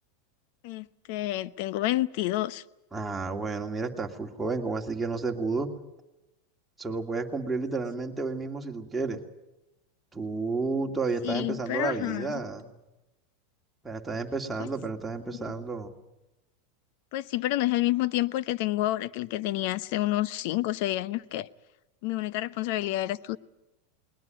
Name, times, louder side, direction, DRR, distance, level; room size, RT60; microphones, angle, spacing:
voice 1, 0.6-2.6 11.2-12.4 14.6-14.7 15.2-15.4 17.1-21.5 22.0-23.4, left 16 dB, 60° left, 0.8 m, -29 dB
voice 2, 2.9-5.7 6.8-9.2 10.1-12.7 13.8-15.9, right 3 dB, 10° right, 2.6 m, -31 dB
21.0 x 20.0 x 9.4 m
hypercardioid pair, 115°, 0 cm